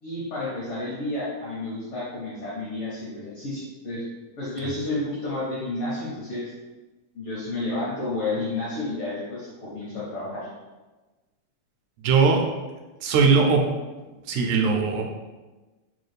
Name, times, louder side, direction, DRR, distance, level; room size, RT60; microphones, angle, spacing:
voice 1, 0.0-4.0 4.4-6.5 7.1-10.5, left 2 dB, 70° left, -8 dB, 1.3 m, -31 dB
voice 2, 12.0-12.4 13.0-13.6 14.3-15.1, right 5 dB, 80° right, 2 dB, 1.9 m, -19 dB
4.7 x 2.3 x 3.2 m, 1.2 s
omnidirectional pair, 3.4 m